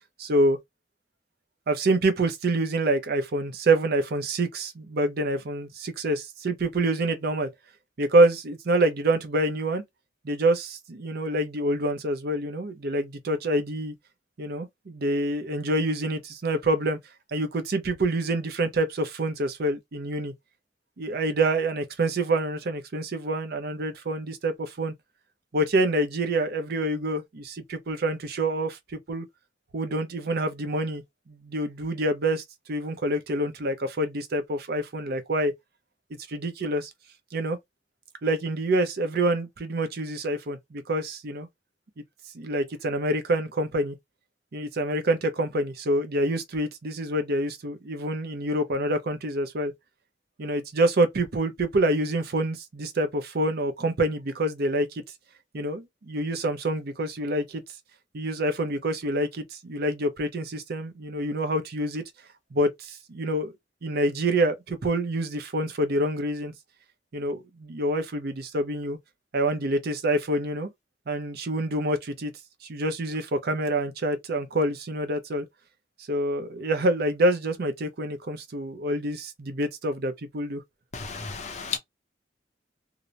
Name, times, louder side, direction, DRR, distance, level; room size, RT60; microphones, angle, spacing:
voice 1, 0.2-0.6 1.7-7.5 8.0-9.8 10.2-13.9 14.4-17.0 17.3-20.3 21.0-24.9 25.5-29.2 29.7-31.0 31.3-32.4 32.7-35.5 36.3-36.9 37.3-37.6 38.2-41.5 42.3-44.0 44.5-49.7 50.4-55.0 55.5-57.6 58.1-62.0 62.5-63.5 63.8-66.5 67.1-69.0 69.3-70.7 71.1-72.3 72.6-75.5 76.1-80.6, right 1 dB, 60° right, 0.6 m, -26 dB
voice 2, 80.9-81.8, left 5 dB, 40° left, 0.6 m, -33 dB
2.8 x 2.0 x 2.3 m
head